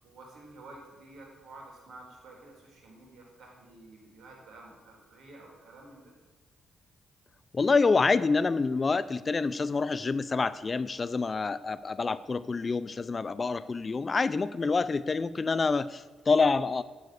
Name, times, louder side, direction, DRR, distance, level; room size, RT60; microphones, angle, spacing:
voice 1, 0.0-6.1, right 2 dB, 65° right, 0 dB, 4.4 m, -51 dB
voice 2, 7.5-16.8, left 4 dB, 40° left, 16 dB, 0.6 m, -27 dB
12.0 x 9.3 x 6.7 m, 1.3 s
hypercardioid pair, 45°, 0 cm